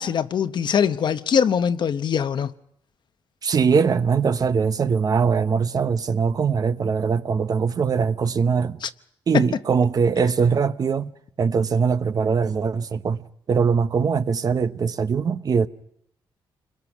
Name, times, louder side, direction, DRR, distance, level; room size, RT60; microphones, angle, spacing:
voice 1, 0.0-2.5 8.8-8.9 9.3-9.5, left 7 dB, 55° left, 0.9 m, -22 dB
voice 2, 3.4-8.8 9.3-11.1 11.4-13.2 13.5-15.7, right 6 dB, 45° right, 0.8 m, -21 dB
28.5 x 21.5 x 6.1 m
wide cardioid pair, 130°, 9 cm